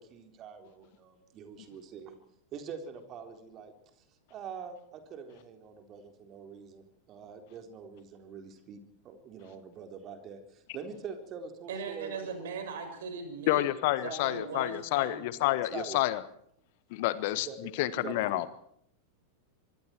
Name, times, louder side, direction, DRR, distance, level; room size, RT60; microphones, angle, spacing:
voice 1, 0.0-2.2 2.5-3.7 4.3-12.5 14.1-14.2 15.7-16.0 17.5-18.4, right 6 dB, 35° right, 6 dB, 3.9 m, -44 dB
voice 2, 11.7-13.7 14.0-15.3, right 5 dB, 60° right, 6 dB, 6.8 m, -39 dB
voice 3, 13.5-16.2 16.9-17.5 17.8-18.4, left 16 dB, 50° left, 16 dB, 1.4 m, -29 dB
25.0 x 23.5 x 4.6 m, 0.68 s
figure-of-eight pair, 90°, 0 cm